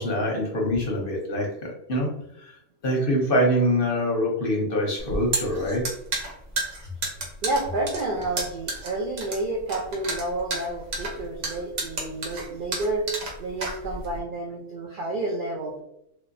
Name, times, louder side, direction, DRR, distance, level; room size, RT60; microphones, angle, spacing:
voice 1, 0.0-2.5 2.8-5.9, equal, 50° left, -1 dB, 0.7 m, -25 dB
sound 1, 5.0-14.2, right 2 dB, 60° right, 1.2 m, -31 dB
voice 2, 7.4-13.1 13.4-15.8, right 2 dB, 80° right, 0 dB, 0.4 m, -30 dB
3.2 x 2.7 x 2.5 m, 0.79 s
omnidirectional pair, 1.5 m